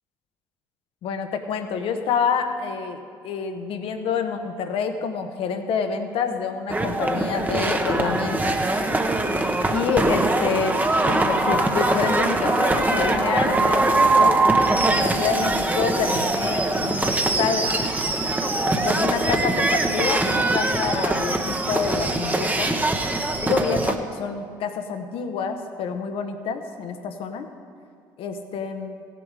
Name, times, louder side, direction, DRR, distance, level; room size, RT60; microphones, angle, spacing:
voice 1, 1.0-8.6 9.7-14.5 14.8-17.7 18.7-22.8 23.4-27.5 28.2-29.0, left 6 dB, 60° left, 7 dB, 1.0 m, -27 dB
sound 1, 6.7-24.0, right 2 dB, 15° right, 1.0 m, -22 dB
16.0 x 7.1 x 4.9 m, 2.2 s
hypercardioid pair, 60°, 10 cm